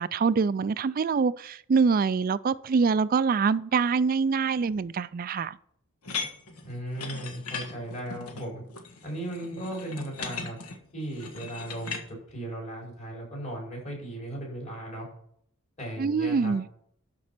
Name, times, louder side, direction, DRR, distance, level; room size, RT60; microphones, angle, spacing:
voice 1, 0.0-5.6 16.0-16.6, right 5 dB, 40° right, 0.3 m, -25 dB
sound 1, 6.0-12.0, left 5 dB, 85° left, 1.6 m, -38 dB
voice 2, 6.6-8.6 9.0-10.6 10.9-15.1 15.8-16.6, right 1 dB, 30° left, 5.1 m, -36 dB
12.5 x 5.3 x 5.9 m
head